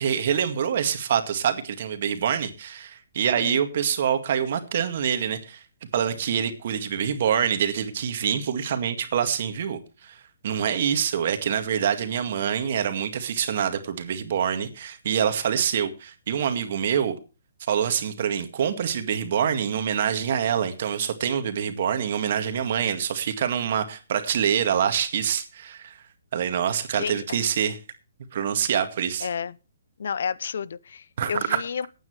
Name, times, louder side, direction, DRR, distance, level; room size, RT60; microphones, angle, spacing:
voice 1, 0.0-5.6 5.9-10.2 10.4-17.2 17.7-26.0 26.3-27.8 28.3-29.3 31.2-31.6, right 8 dB, 50° right, 2.0 m, -25 dB
voice 2, 3.2-3.6 27.0-27.4 29.2-29.6 30.0-31.9, left 6 dB, 65° left, 0.6 m, -31 dB
19.0 x 9.1 x 3.3 m
hypercardioid pair, 155°, 0 cm